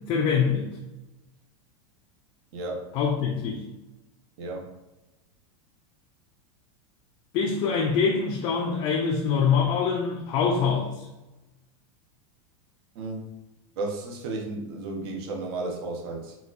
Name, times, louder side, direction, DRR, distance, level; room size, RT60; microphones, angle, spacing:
voice 1, 0.1-0.7 2.9-3.6 7.3-11.1, left 6 dB, 35° left, -1 dB, 0.4 m, -24 dB
voice 2, 2.5-2.9 4.4-4.7 12.9-13.2 13.8-16.4, right 2 dB, 55° right, 1 dB, 0.7 m, -33 dB
4.1 x 2.3 x 2.3 m, 1.0 s
supercardioid pair, 150°, 16 cm